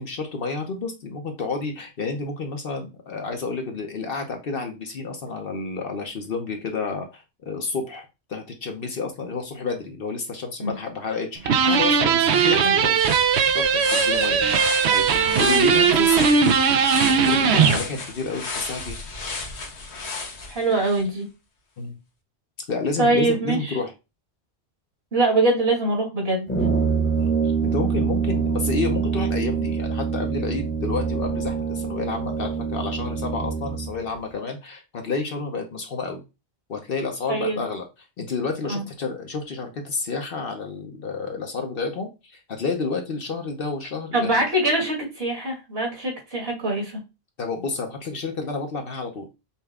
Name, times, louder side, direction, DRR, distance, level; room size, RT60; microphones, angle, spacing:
voice 1, 0.0-13.0 13.4-14.4 14.9-16.3 17.2-19.0 21.8-22.0 22.7-23.9 27.2-36.2 36.7-37.9 38.2-44.4 47.4-49.3, left 4 dB, 60° left, 3 dB, 0.9 m, -30 dB
sound 1, 11.5-17.8, right 6 dB, 80° right, 0.9 m, -19 dB
sound 2, 11.8-11.9 12.3-21.0, left 4 dB, 80° left, 1.2 m, -33 dB
voice 2, 20.5-21.3 23.0-23.8 25.1-26.5 37.3-37.7 38.7-38.8 44.1-47.0, right 2 dB, 65° right, 0 dB, 2.1 m, -23 dB
Brass instrument, 26.5-34.0, right 6 dB, 10° left, 0.9 m, -25 dB
5.7 x 2.2 x 3.4 m, 0.26 s
omnidirectional pair, 1.1 m